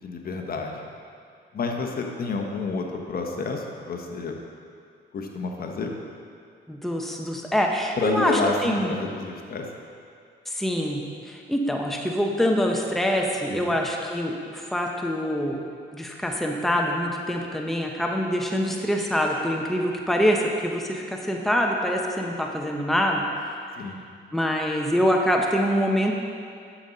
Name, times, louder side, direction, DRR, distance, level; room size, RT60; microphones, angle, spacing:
voice 1, 0.0-0.9 1.5-4.4 5.1-5.9 8.0-9.7 13.6-13.8 23.8-24.0, left 3 dB, 50° left, 2 dB, 1.1 m, -29 dB
voice 2, 6.7-8.9 10.5-15.6 15.9-23.2 24.3-26.2, equal, ahead, 0 dB, 0.9 m, -25 dB
10.0 x 7.1 x 4.0 m, 2.3 s
cardioid pair, 90°, 20 cm